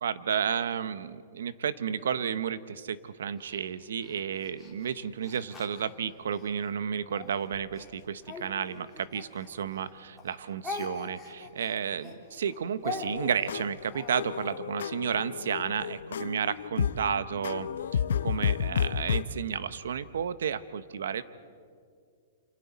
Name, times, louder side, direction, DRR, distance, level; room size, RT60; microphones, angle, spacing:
voice 1, 0.0-21.2, right 7 dB, 80° right, 14 dB, 0.9 m, -32 dB
Speech, 3.4-6.5 7.1-9.9 10.2-14.6, left 2 dB, 5° left, 3.0 m, -42 dB
sound 1, 12.9-19.2, left 8 dB, 75° left, 0.7 m, -32 dB
28.5 x 28.0 x 4.2 m, 2.2 s
hypercardioid pair, 170°, 0 cm